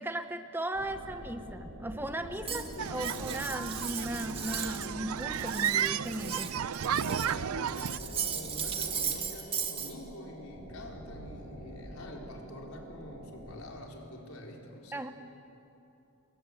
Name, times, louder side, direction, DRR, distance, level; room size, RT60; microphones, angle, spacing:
voice 1, 0.0-2.6 2.9-6.5 14.9-15.1, right 1 dB, 10° right, 8 dB, 0.9 m, -37 dB
sound 1, 0.7-13.6, equal, 65° right, 7.4 m, -47 dB
voice 2, 2.4-3.1 6.9-15.1, left 1 dB, 80° left, 0 dB, 4.5 m, -46 dB
Cutlery silverware, 2.5-4.9 5.2-7.4 7.7-9.9, right 7 dB, 25° right, 1.8 m, -37 dB
sound 2, 2.8-8.0, right 8 dB, 90° right, 0.5 m, -33 dB
29.0 x 21.5 x 8.3 m, 2.8 s
head